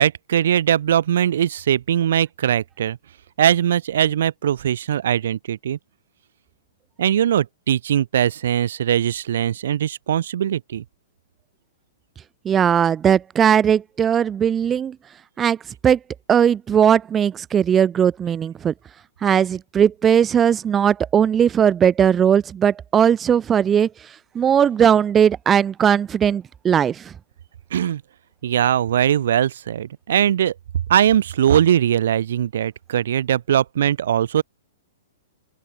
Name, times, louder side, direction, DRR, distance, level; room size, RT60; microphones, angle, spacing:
voice 1, 0.0-3.0 3.4-5.8 7.0-10.8 27.7-28.0 28.4-30.5 30.9-34.4, right 10 dB, 70° right, 7.8 m, -20 dB
voice 2, 12.4-15.0 15.4-15.6 15.8-16.0 16.3-18.7 19.2-27.1, right 8 dB, 15° right, 2.6 m, -18 dB
open air
hypercardioid pair, 145°, 0 cm